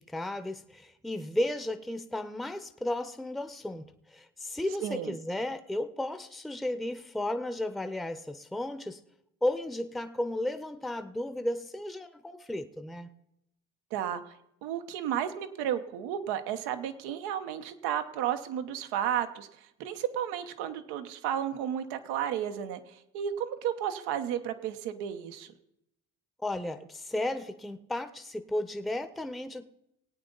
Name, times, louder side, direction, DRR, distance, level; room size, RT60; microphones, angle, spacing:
voice 1, 0.0-9.0 9.4-13.1 26.4-29.6, left 1 dB, ahead, 9 dB, 0.8 m, -34 dB
voice 2, 4.8-5.1 13.9-14.3 14.6-19.5 19.8-25.5, right 10 dB, 90° right, 8 dB, 1.0 m, -33 dB
20.0 x 8.8 x 3.9 m, 0.82 s
supercardioid pair, 65°, 38 cm